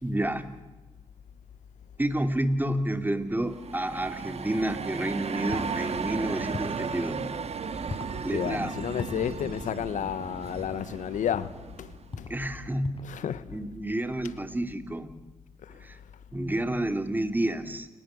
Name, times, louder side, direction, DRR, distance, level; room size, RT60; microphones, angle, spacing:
voice 1, 0.0-0.5 2.0-7.3 8.2-8.8 12.1-13.0 13.5-15.1 15.7-16.0 16.3-17.9, right 1 dB, 15° right, 2.9 m, -30 dB
sound 1, 3.4-12.2, right 6 dB, 55° right, 1.7 m, -35 dB
sound 2, 5.5-5.7 6.5-6.8 7.9-8.2 9.0-9.2 10.4-10.7 11.3-11.6 12.1-12.4 12.8-13.2, left 4 dB, 45° left, 4.3 m, -39 dB
voice 2, 7.8-11.9 12.2-12.3 13.0-13.5 15.6-16.0, left 9 dB, 80° left, 1.2 m, -32 dB
29.5 x 18.5 x 7.7 m
cardioid pair, 70°, 13 cm